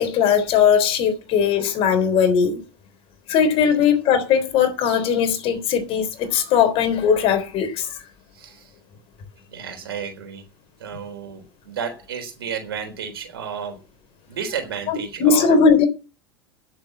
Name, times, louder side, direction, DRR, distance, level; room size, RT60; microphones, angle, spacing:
voice 1, 0.0-2.6 3.3-8.0 14.9-15.9, left 7 dB, 50° left, 3.6 m, -19 dB
voice 2, 9.5-10.4 10.8-13.8 14.3-15.6, right 7 dB, 75° right, 3.8 m, -32 dB
10.5 x 7.5 x 8.7 m
figure-of-eight pair, 80°, 13 cm